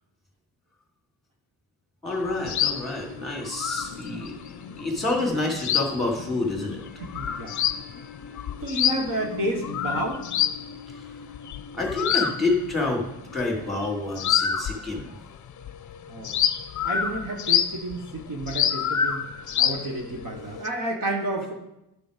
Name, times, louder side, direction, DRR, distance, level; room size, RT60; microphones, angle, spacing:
voice 1, 2.0-8.5 10.9-11.2 11.7-15.1 19.4-19.6 20.4-20.7, left 2 dB, ahead, -2 dB, 2.6 m, -29 dB
sound 1, 2.1-15.2 15.5-20.7, left 9 dB, 45° left, 0.6 m, -29 dB
voice 2, 7.1-7.9 8.6-10.2 16.1-16.4 16.8-19.3 19.6-21.5, right 1 dB, 55° right, 1 dB, 1.5 m, -31 dB
11.5 x 6.9 x 5.2 m, 0.87 s
wide cardioid pair, 160°, 40 cm